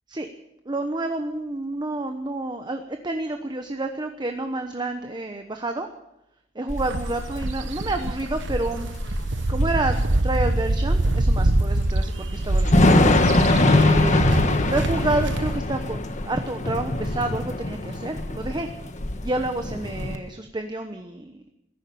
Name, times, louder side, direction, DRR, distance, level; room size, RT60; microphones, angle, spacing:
voice 1, 0.6-5.9 6.5-9.2 9.5-13.1 13.7-18.7 19.2-21.4, right 2 dB, 25° right, 6 dB, 1.0 m, -29 dB
Thunder / Rain, 6.7-20.2, left 2 dB, 40° left, 1.3 m, -23 dB
sound 1, 6.8-15.6, right 2 dB, 70° right, 1.1 m, -25 dB
14.5 x 11.0 x 8.7 m, 0.88 s
head